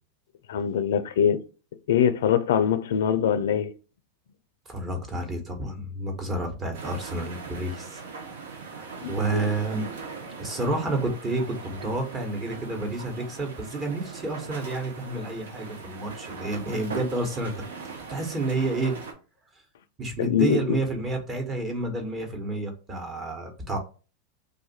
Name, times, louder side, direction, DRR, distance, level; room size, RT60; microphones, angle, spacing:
voice 1, 0.5-1.4 1.9-3.7 9.0-9.4 20.2-20.8, left 8 dB, 80° left, 0.4 m, -23 dB
voice 2, 4.7-8.0 8.7-9.9 10.4-17.5 18.1-18.9 20.0-23.8, right 2 dB, 25° right, 1.1 m, -30 dB
sound 1, 6.7-19.1, right 5 dB, 85° right, 0.8 m, -40 dB
2.6 x 2.4 x 4.1 m
hypercardioid pair, 105°, 0 cm